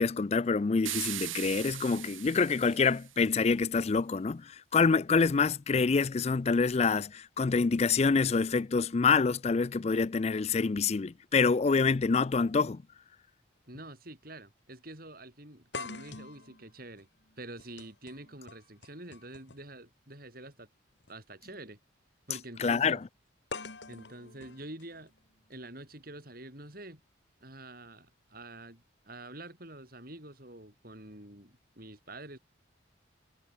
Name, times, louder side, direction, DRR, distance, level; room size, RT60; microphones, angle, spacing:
voice 1, 0.0-12.8 22.6-23.0, left 4 dB, 30° left, 0.4 m, -26 dB
sound 1, 0.8-3.2, right 14 dB, 90° right, 4.1 m, -39 dB
sound 2, 13.7-13.9 14.3-14.4 15.7-19.8 21.0-21.1 23.5-25.5, left 4 dB, 60° left, 2.1 m, -45 dB
voice 2, 13.7-17.1 17.4-20.7 21.1-21.8 22.3-23.0 23.9-25.1 25.5-27.0 27.4-32.4, right 1 dB, 45° right, 6.4 m, -47 dB
head